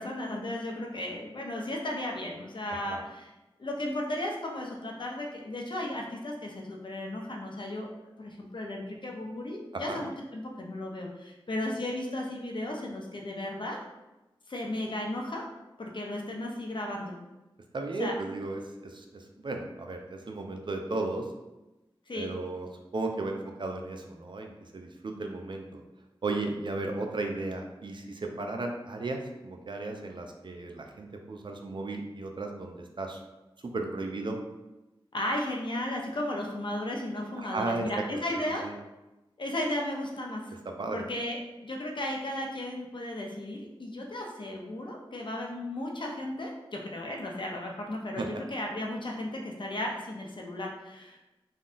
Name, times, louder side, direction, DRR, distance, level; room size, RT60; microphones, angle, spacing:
voice 1, 0.0-3.3 3.6-7.9 8.2-13.8 14.5-15.4 15.8-17.1 18.0-18.1 22.1-22.3 35.1-38.6 39.4-40.4 40.9-41.4 41.6-51.2, left 1 dB, 55° left, 0 dB, 0.6 m, -35 dB
voice 2, 9.7-10.0 17.7-21.2 22.1-22.7 22.9-25.8 26.2-33.2 33.6-34.4 37.4-38.0 38.3-38.7 40.7-41.0 48.2-48.3, right 2 dB, 55° right, 3 dB, 0.4 m, -35 dB
3.6 x 2.3 x 2.5 m, 1.0 s
cardioid pair, 40°, 10 cm